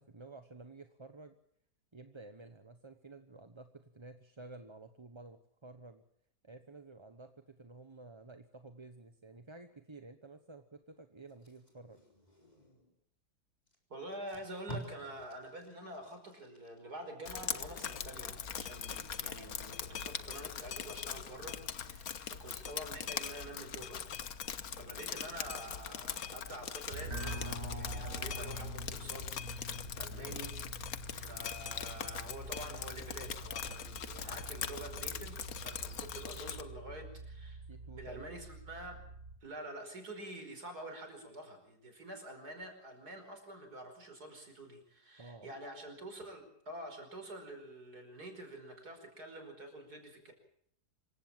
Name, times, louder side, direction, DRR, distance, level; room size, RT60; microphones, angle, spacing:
voice 1, 0.0-1.4 1.9-6.0 6.4-12.0 37.7-38.4 45.2-45.5, right 3 dB, 20° right, 8 dB, 1.0 m, -52 dB
Packing tape duct tape, 11.3-13.0 13.7-13.8 14.1-17.1 17.5-17.7, right 1 dB, 25° left, 4.5 m, -50 dB
voice 2, 13.9-24.0 24.7-30.5 31.1-37.6 37.9-39.0 39.4-50.3, right 1 dB, 75° right, 5 dB, 5.7 m, -47 dB
Drip, 17.3-36.6, left 8 dB, 65° left, 1.6 m, -42 dB
sound 1, 26.9-39.4, right 1 dB, 40° right, 5.6 m, -45 dB
26.0 x 15.5 x 7.5 m, 0.68 s
omnidirectional pair, 1.7 m